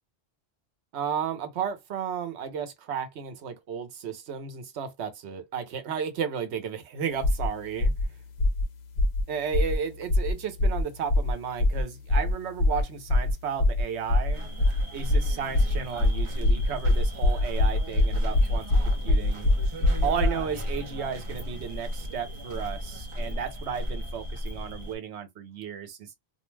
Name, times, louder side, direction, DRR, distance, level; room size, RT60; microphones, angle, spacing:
voice 1, 0.9-7.9 9.3-14.5 14.9-19.5 20.0-26.1, right 7 dB, 85° right, 1.0 m, -33 dB
sound 1, 7.2-7.5 7.8-8.1 8.4-8.6 9.0-9.2 9.5-9.8 10.1-10.3 10.6-10.8 11.1-11.3 11.6-11.8 12.1-12.3 12.6-12.8 13.1-13.3 13.6-13.8 14.1-14.3 14.6-14.8 15.1-20.4, left 2 dB, 75° left, 0.9 m, -22 dB
sound 2, 14.3-25.0, equal, 35° right, 0.5 m, -34 dB
2.4 x 2.1 x 3.1 m
omnidirectional pair, 1.1 m